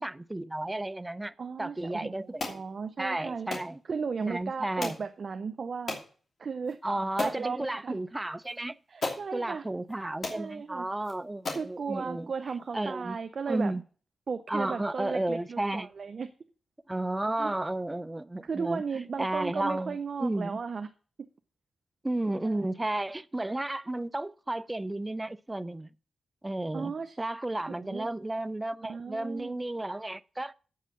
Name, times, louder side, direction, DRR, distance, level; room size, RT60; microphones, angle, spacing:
voice 1, 0.0-2.6 3.0-3.8 4.2-5.0 6.8-8.8 9.3-12.3 12.7-13.2 13.5-13.8 14.5-15.9 16.9-18.8 19.2-20.6 22.0-25.9 26.4-26.9 27.2-30.5, right 1 dB, 15° right, 0.4 m, -33 dB
voice 2, 1.4-3.5 3.9-6.0 6.4-6.8 7.2-8.0 8.9-9.6 10.3-10.9 11.5-13.7 14.3-16.3 17.4-17.5 18.4-20.9 22.4-22.6 26.7-27.2 27.7-28.1 28.9-29.6, right 5 dB, 55° right, 0.6 m, -35 dB
sound 1, 2.4-2.6 3.5-3.7 4.8-5.1 5.9-6.1 6.7-6.8 7.2-7.4 8.5-8.6 9.0-9.3 9.9-10.0 10.2-10.4 11.0-11.1 11.5-11.7, left 3 dB, 50° left, 2.8 m, -34 dB
8.4 x 5.6 x 7.3 m
cardioid pair, 75°, 0 cm